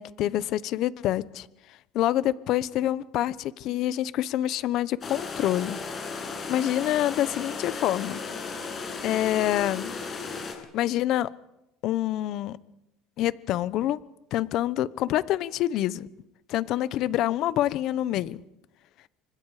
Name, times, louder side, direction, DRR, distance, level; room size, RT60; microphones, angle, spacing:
voice 1, 0.0-1.5 1.9-5.8 6.1-8.2 9.0-9.9 10.7-11.3 11.8-12.6 13.2-14.0 14.3-16.1 16.5-18.4, left 13 dB, 55° left, 16 dB, 1.0 m, -26 dB
sound 1, 5.0-10.5, left 4 dB, 30° left, 7.0 m, -35 dB
30.0 x 25.5 x 5.0 m, 0.89 s
cardioid pair, 130°, 0 cm